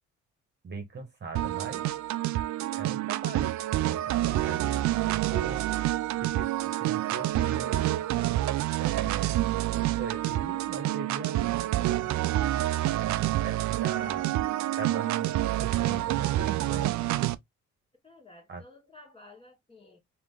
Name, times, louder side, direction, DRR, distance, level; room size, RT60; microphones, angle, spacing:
voice 1, 0.6-2.0 2.8-3.5 3.8-4.7 5.1-5.7 6.2-7.9 8.8-9.5 9.7-12.2 12.9-14.3 14.8-16.9 18.5-18.6, right 5 dB, 35° right, 1.3 m, -39 dB
sound 1, 1.4-17.4, right 15 dB, 70° right, 0.5 m, -28 dB
voice 2, 18.0-20.0, left 2 dB, 20° left, 2.0 m, -53 dB
3.4 x 3.0 x 3.7 m
cardioid pair, 90°, 30 cm